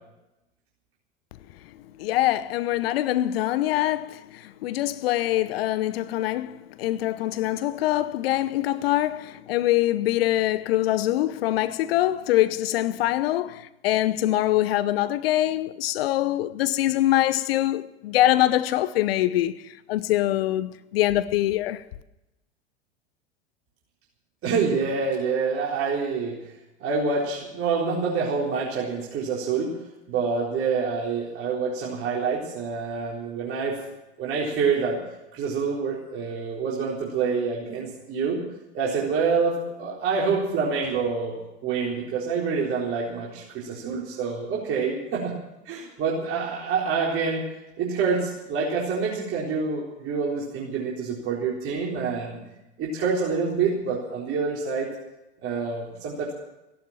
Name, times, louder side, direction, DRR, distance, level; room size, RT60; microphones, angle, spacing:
voice 1, 2.0-21.8, left 14 dB, 60° left, 0.9 m, -24 dB
voice 2, 24.4-26.4 26.8-29.7 30.1-33.8 34.2-35.0 35.3-38.4 38.7-41.4 41.6-45.3 45.6-47.4 47.8-52.4 52.8-54.9 55.4-56.3, right 5 dB, 40° right, 4.3 m, -27 dB
16.5 x 11.5 x 7.5 m
hypercardioid pair, 90°, 34 cm